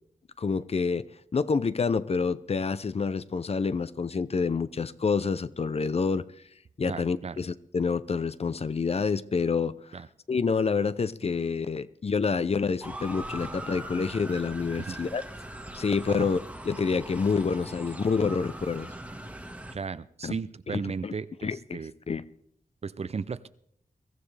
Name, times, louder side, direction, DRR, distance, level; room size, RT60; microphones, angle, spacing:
voice 1, 0.4-1.1 1.3-6.3 6.8-9.8 10.3-15.2 15.7-16.4 16.6-18.9 20.2-20.4 20.7-21.1 21.4-21.8 22.1-22.2, left 5 dB, 45° left, 15 dB, 0.6 m, -28 dB
voice 2, 6.8-7.4 9.9-10.1 14.8-15.0 16.1-16.3 19.7-21.9 22.8-23.5, right 5 dB, 45° right, 16 dB, 0.5 m, -35 dB
Motor vehicle (road) / Siren, 12.8-19.7, right 1 dB, 10° right, 1.5 m, -41 dB
22.5 x 14.5 x 3.4 m, 0.67 s
wide cardioid pair, 120°, 14 cm